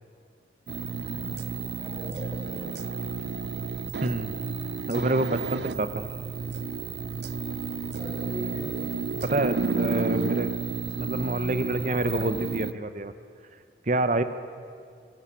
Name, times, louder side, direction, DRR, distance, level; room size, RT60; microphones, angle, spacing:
sound 1, 0.7-12.7, right 4 dB, 65° right, 0.5 m, -32 dB
voice 1, 1.8-2.8 8.0-8.8, equal, 5° right, -6 dB, 4.7 m, -40 dB
voice 2, 4.0-4.3 4.9-6.0 9.2-10.5 11.0-13.1 13.9-14.2, right 2 dB, 40° right, 11 dB, 0.9 m, -27 dB
23.0 x 14.5 x 8.3 m, 2.3 s
head